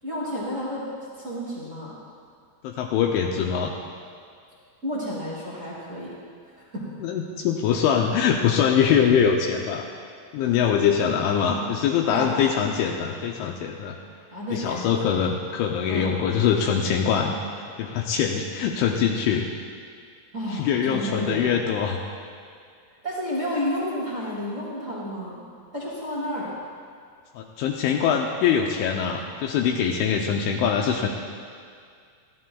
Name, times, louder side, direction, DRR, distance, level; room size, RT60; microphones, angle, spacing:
voice 1, 0.0-0.9 1.2-2.0 4.8-6.1 6.5-6.8 12.1-12.5 14.3-15.1 15.9-16.1 20.3-21.5 23.0-25.4 25.7-26.5, equal, 70° right, -7 dB, 0.7 m, -31 dB
voice 2, 2.6-3.7 7.0-9.9 10.3-14.0 14.5-17.4 17.8-19.5 20.5-22.0 27.4-31.1, left 7 dB, 80° left, 1 dB, 2.9 m, -23 dB
21.5 x 15.0 x 2.3 m, 2.2 s
omnidirectional pair, 5.8 m